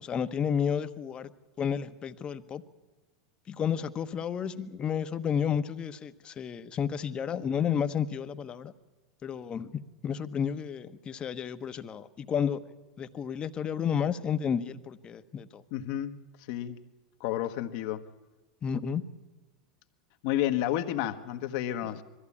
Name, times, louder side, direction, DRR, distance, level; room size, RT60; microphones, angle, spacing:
voice 1, 0.0-1.3 1.6-2.6 3.5-8.7 9.2-12.6 13.0-15.6 18.6-19.0 21.8-21.9, left 7 dB, 30° left, 11 dB, 1.1 m, -31 dB
voice 2, 15.7-16.2 16.5-16.8 17.2-18.0 20.2-22.0, left 12 dB, 60° left, 8 dB, 1.3 m, -31 dB
21.5 x 14.5 x 8.6 m, 1.3 s
hypercardioid pair, 100°, 3 cm